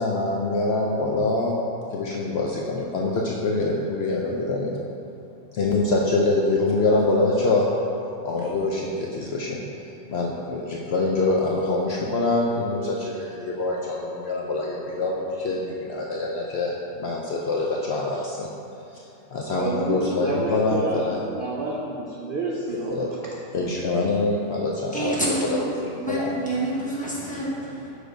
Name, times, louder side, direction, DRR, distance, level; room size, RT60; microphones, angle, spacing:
voice 1, 0.0-1.6 1.9-4.7 5.5-7.7 8.2-9.6 10.1-18.5 18.9-19.0 19.3-21.3 22.9-23.1 23.5-26.3, left 2 dB, 65° left, -2 dB, 0.7 m, -25 dB
voice 2, 19.5-21.1 21.3-23.4, right 2 dB, 60° right, -2 dB, 0.5 m, -29 dB
voice 3, 24.9-25.6 25.9-27.9, right 1 dB, 5° left, -7 dB, 1.0 m, -28 dB
6.4 x 3.3 x 5.0 m, 2.7 s
omnidirectional pair, 1.4 m